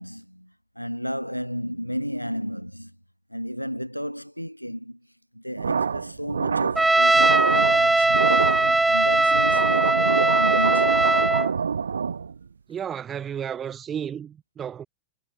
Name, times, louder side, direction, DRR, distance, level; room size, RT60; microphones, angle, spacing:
voice 1, 0.0-3.0 3.3-5.0 5.3-8.4 8.9-11.2, equal, 90° left, 4.1 m, -33 dB
sound 1, 5.6-12.4, right 6 dB, 70° right, 1.4 m, -26 dB
Trumpet, 6.8-11.5, right 2 dB, 5° right, 0.4 m, -20 dB
voice 2, 12.7-14.9, right 8 dB, 25° right, 5.6 m, -32 dB
figure-of-eight pair, 90°, 0 cm